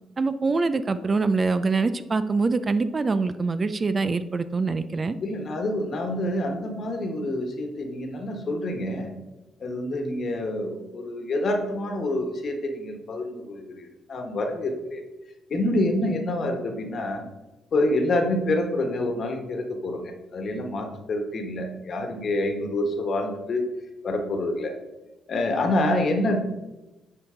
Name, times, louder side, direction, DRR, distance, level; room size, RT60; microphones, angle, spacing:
voice 1, 0.2-5.2, right 3 dB, 30° right, 12 dB, 0.4 m, -24 dB
voice 2, 5.2-9.1 9.6-15.0 15.5-17.2 17.7-23.6 24.0-24.7 25.3-26.4, left 1 dB, 50° left, 4 dB, 1.3 m, -27 dB
8.9 x 4.5 x 3.8 m, 1.0 s
cardioid pair, 90°, 0 cm